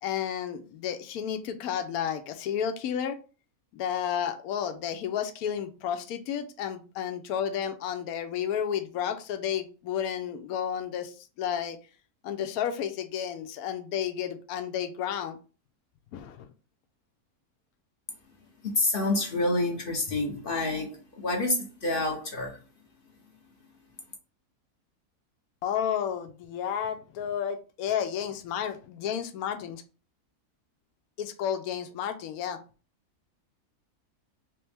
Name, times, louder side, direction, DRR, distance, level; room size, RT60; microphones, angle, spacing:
voice 1, 0.0-3.2 3.7-11.8 12.2-15.4 16.1-16.5 25.6-29.8 31.2-32.6, left 9 dB, 75° left, 1.1 m, -32 dB
voice 2, 18.6-22.6, left 2 dB, 50° left, 0.7 m, -28 dB
3.5 x 3.0 x 3.3 m
omnidirectional pair, 1.6 m